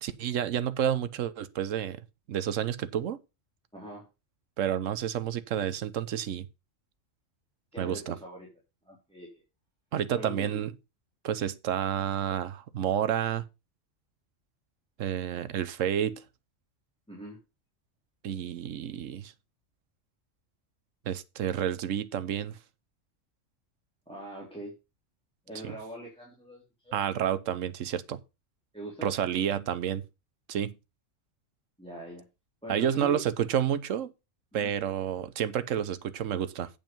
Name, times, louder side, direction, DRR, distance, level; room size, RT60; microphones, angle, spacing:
voice 1, 0.0-2.0 2.3-3.2 4.6-6.5 7.8-8.2 9.9-10.7 11.2-13.4 15.0-16.2 18.2-19.3 21.1-22.6 25.6-25.8 26.9-28.2 29.0-30.0 30.5-30.8 32.7-34.1 34.5-36.7, right 9 dB, 85° right, 1.1 m, -30 dB
voice 2, 3.7-4.1 7.7-8.5 8.9-9.4 10.1-10.6 17.1-17.4 24.1-24.7 25.5-27.0 28.7-29.1 31.8-32.2 32.6-33.2 34.5-34.7, right 1 dB, 5° left, 3.3 m, -42 dB
9.1 x 5.4 x 5.2 m
omnidirectional pair, 1.3 m